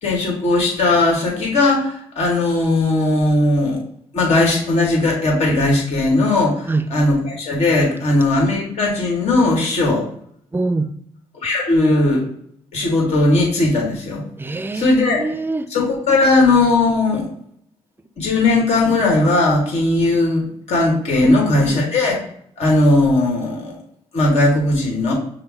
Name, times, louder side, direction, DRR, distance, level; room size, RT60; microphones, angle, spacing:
voice 1, 0.0-3.8 4.1-10.0 11.4-12.2 12.7-14.2 14.7-15.2 15.7-17.3 18.2-22.2 22.6-23.8 24.1-25.1, left 2 dB, 70° left, -2 dB, 1.7 m, -17 dB
voice 2, 10.5-10.9 14.4-15.7 21.6-21.8, right 2 dB, 20° right, 11 dB, 0.5 m, -24 dB
5.7 x 2.2 x 3.6 m, 0.67 s
supercardioid pair, 60°, 11 cm